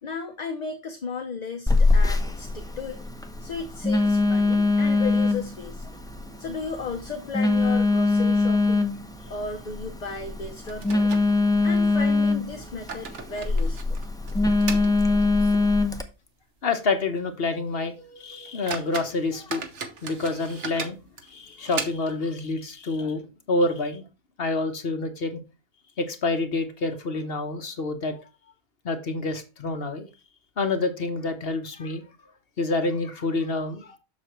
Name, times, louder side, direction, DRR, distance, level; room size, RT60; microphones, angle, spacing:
voice 1, 0.0-3.0 3.4-5.9 6.4-8.9 9.3-11.1 11.6-14.0, left 4 dB, 40° left, 0.8 m, -35 dB
Telephone, 1.7-16.0, left 3 dB, 5° left, 0.7 m, -23 dB
sound 1, 4.6-4.9 5.2-5.3 5.7-5.8 6.4-6.9 7.2-7.3 7.9-8.1 8.4-8.6 10.0-10.1 10.7-11.9 12.5-15.7 16.1-16.2 16.7-16.8 17.3-17.4 18.0-18.1 18.4-22.3, right 5 dB, 90° right, 1.4 m, -38 dB
voice 2, 16.6-19.7 20.0-21.0 21.3-24.0 24.4-25.4 26.0-28.2 28.8-30.1 30.6-32.0 32.6-34.0, left 3 dB, 60° left, 1.3 m, -28 dB
7.0 x 6.7 x 3.0 m
omnidirectional pair, 1.2 m